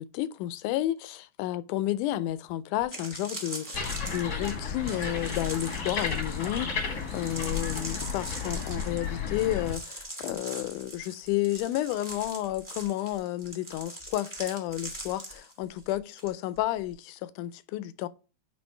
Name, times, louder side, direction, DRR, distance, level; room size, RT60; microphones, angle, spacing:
voice 1, 0.0-18.1, left 14 dB, 80° left, 2.0 m, -31 dB
sound 1, 2.3-2.4 2.8-16.3 16.6-16.9, right 1 dB, 15° right, 0.8 m, -42 dB
sound 2, 3.7-9.7, left 5 dB, 45° left, 1.2 m, -33 dB
9.6 x 3.5 x 4.5 m
omnidirectional pair, 3.6 m